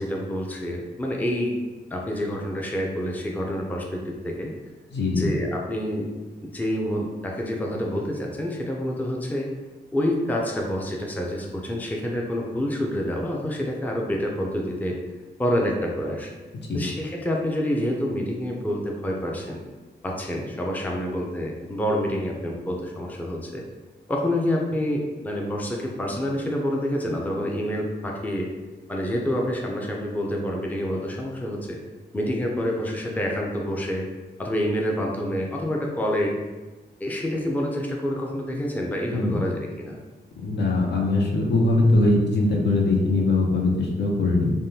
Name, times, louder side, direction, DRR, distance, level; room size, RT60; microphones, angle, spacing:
voice 1, 0.0-1.5 1.9-4.5 5.1-6.1 6.4-9.5 9.9-15.0 15.4-16.3 16.7-19.6 20.0-23.6 24.1-28.5 28.9-31.8 32.1-34.0 34.4-36.3 37.0-40.0, equal, 10° left, -1 dB, 0.4 m, -27 dB
voice 2, 4.9-5.3 16.7-16.8 39.1-39.4 40.4-44.5, left 2 dB, 70° left, -1 dB, 0.6 m, -21 dB
3.4 x 2.2 x 2.7 m, 1.2 s
wide cardioid pair, 90°, 18 cm